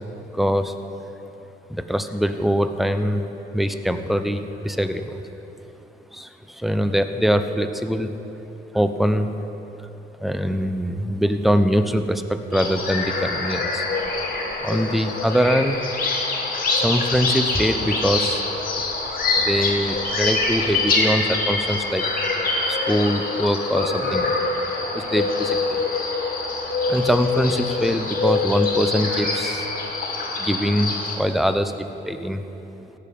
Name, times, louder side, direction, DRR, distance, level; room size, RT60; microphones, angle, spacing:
voice 1, 0.3-0.7 1.7-3.2 3.5-5.2 6.1-8.1 8.7-9.3 10.2-13.8 14.6-15.8 16.7-18.4 19.4-22.0 22.7-24.4 24.9-25.9 26.9-29.7 30.4-32.4, equal, ahead, 9 dB, 0.6 m, -23 dB
sound 1, 12.5-31.1, left 3 dB, 45° left, 2.2 m, -25 dB
17.0 x 6.7 x 5.3 m, 3.0 s
cardioid pair, 90°, 20 cm